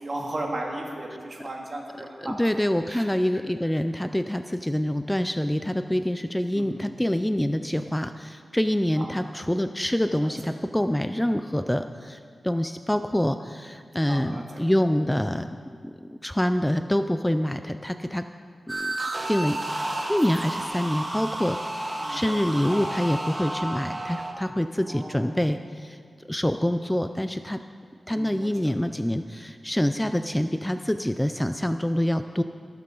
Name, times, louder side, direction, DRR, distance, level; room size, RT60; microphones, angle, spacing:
voice 1, 0.0-2.4 2.9-3.1 6.5-6.9 9.0-9.2 10.2-10.3 14.1-14.4 22.0-22.4 24.9-25.2 28.1-28.5, right 1 dB, 45° right, -1 dB, 2.2 m, -35 dB
voice 2, 2.2-15.5 15.8-18.2 18.7-18.9 19.3-26.0 26.3-27.6 28.1-32.4, left 1 dB, 10° left, 9 dB, 0.4 m, -26 dB
sound 1, 18.7-24.3, right 1 dB, 25° right, 1.2 m, -31 dB
18.5 x 9.0 x 3.9 m, 2.1 s
wide cardioid pair, 85°, 0 cm